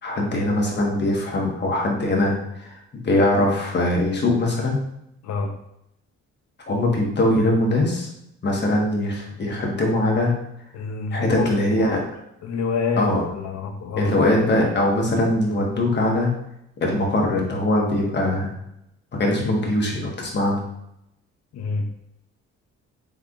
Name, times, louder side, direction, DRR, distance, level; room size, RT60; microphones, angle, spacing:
voice 1, 0.0-2.8 3.0-4.8 6.7-8.1 8.4-10.3 11.1-12.0 13.0-13.2 14.0-16.3 16.8-18.5 19.1-20.6, left 1 dB, 35° left, -1 dB, 1.1 m, -21 dB
voice 2, 10.7-12.1 12.4-13.1 13.3-14.1 21.5-21.9, left 4 dB, 60° left, 5 dB, 0.6 m, -27 dB
3.6 x 3.5 x 2.3 m, 0.80 s
cardioid pair, 90°, 30 cm